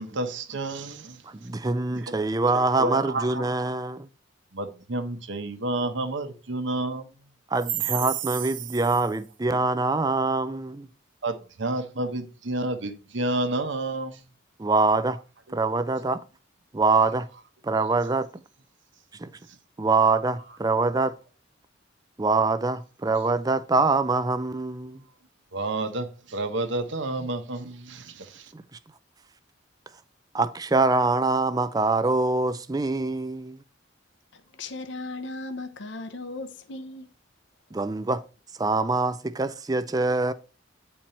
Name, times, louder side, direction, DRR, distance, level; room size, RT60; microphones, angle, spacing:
voice 1, 0.0-1.2 1.9-2.2 2.8-3.5 4.5-7.1 7.9-8.1 11.2-14.2 25.5-28.5, right 2 dB, 70° right, 1.0 m, -30 dB
voice 2, 1.2-4.1 7.5-10.9 14.6-15.2 15.5-16.2 16.7-17.3 17.6-18.3 19.2-19.3 19.8-21.1 22.2-25.0 28.5-28.6 30.3-33.6 37.7-38.2 38.6-40.3, right 3 dB, 20° right, 0.4 m, -24 dB
voice 3, 34.3-37.1, left 2 dB, 65° left, 0.8 m, -37 dB
9.0 x 4.5 x 4.3 m
head